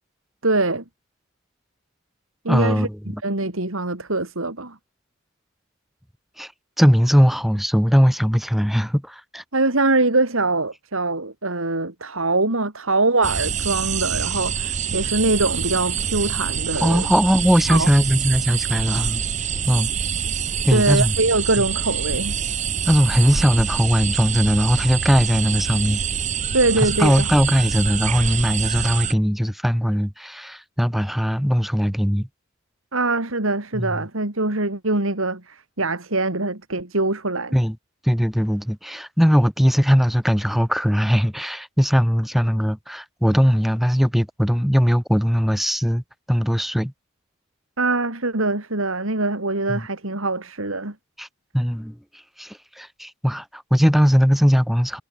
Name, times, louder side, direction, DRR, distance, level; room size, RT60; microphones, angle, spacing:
voice 1, 0.4-0.8 2.4-2.9 3.2-4.8 9.5-17.1 17.7-17.9 20.7-22.4 26.5-27.3 32.9-37.6 47.8-50.9, right 2 dB, 75° right, 3.0 m, -23 dB
voice 2, 2.5-3.2 6.4-6.5 6.8-9.4 16.8-19.2 19.7-19.9 20.6-21.1 22.9-26.0 26.8-32.3 33.7-33.9 37.5-37.8 38.0-46.0 46.3-46.9 49.7-49.9 51.2-51.3 51.5-55.0, equal, ahead, 1.4 m, -19 dB
sound 1, 13.2-29.1, right 7 dB, 35° right, 1.0 m, -26 dB
head